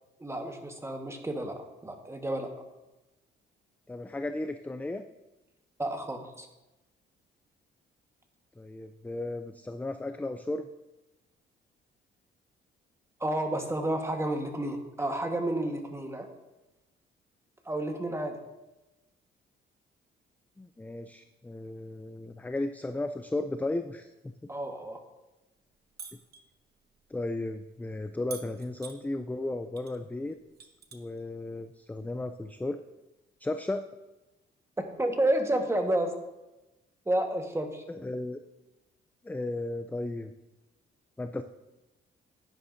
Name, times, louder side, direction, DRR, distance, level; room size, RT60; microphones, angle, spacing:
voice 1, 0.2-2.5 5.8-6.5 13.2-16.3 17.7-18.4 24.5-25.0 35.0-36.1 37.1-37.8, right 1 dB, 15° right, 4 dB, 1.3 m, -30 dB
voice 2, 3.9-5.0 8.6-10.7 20.6-24.3 27.1-30.4 30.9-32.8 33.4-33.8 37.9-38.4 39.2-40.3 41.2-41.4, left 2 dB, 10° left, 8 dB, 0.4 m, -35 dB
sound 1, 26.0-26.4 28.3-29.0 29.8-30.0 30.3-31.2 32.4-32.5, right 6 dB, 55° right, 1.1 m, -45 dB
10.5 x 9.7 x 2.6 m, 1.0 s
cardioid pair, 90°, 20 cm